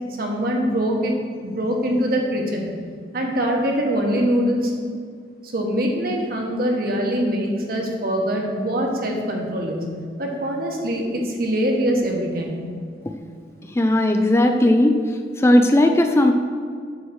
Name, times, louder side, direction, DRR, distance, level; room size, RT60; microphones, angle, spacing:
voice 1, 0.2-2.7 3.1-4.7 5.4-12.7, equal, 55° right, 0 dB, 1.4 m, -23 dB
voice 2, 13.7-15.0 15.4-16.3, left 1 dB, 15° left, 5 dB, 0.4 m, -16 dB
8.0 x 4.7 x 6.3 m, 2.1 s
head